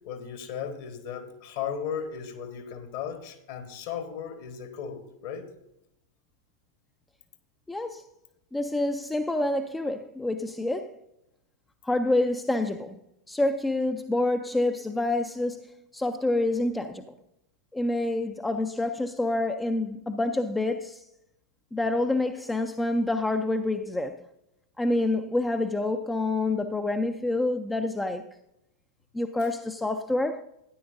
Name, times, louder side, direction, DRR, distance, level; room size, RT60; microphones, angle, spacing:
voice 1, 0.0-5.5, left 7 dB, 50° left, 1.3 m, -36 dB
voice 2, 7.7-8.0 8.5-10.9 11.8-13.0 13.3-15.6 15.9-17.0 17.7-21.0 21.7-24.2 24.8-28.2 29.1-30.4, left 2 dB, 10° left, 0.4 m, -27 dB
13.0 x 10.0 x 2.6 m
figure-of-eight pair, 90°, 0 cm